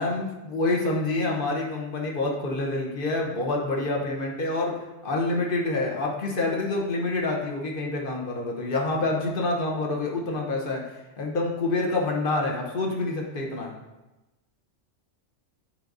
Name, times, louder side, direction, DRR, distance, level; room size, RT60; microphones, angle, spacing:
voice 1, 0.0-4.7 5.0-10.8 11.2-13.7, left 2 dB, 45° left, 0 dB, 1.1 m, -27 dB
8.9 x 5.1 x 2.6 m, 1.0 s
omnidirectional pair, 1.3 m